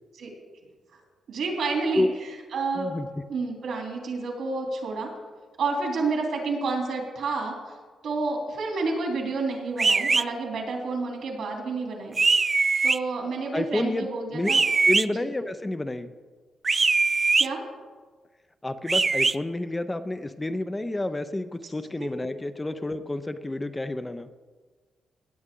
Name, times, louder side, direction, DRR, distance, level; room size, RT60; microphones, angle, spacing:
voice 1, 1.3-2.1 2.5-2.9 3.3-5.1 5.6-7.7 8.0-12.1 12.8-14.6 15.2-15.3 17.4-17.6 22.0-22.1, right 3 dB, 80° right, 0 dB, 3.0 m, -29 dB
voice 2, 2.7-3.2 13.5-14.1 14.3-14.5 14.9-16.1 18.6-24.3, left 2 dB, 15° left, 10 dB, 0.6 m, -29 dB
sound 1, 9.8-10.2 12.2-13.0 14.5-15.0 16.6-17.5 18.9-19.3, right 4 dB, 35° right, 0.3 m, -21 dB
18.0 x 7.8 x 3.8 m, 1.4 s
cardioid pair, 95°, 0 cm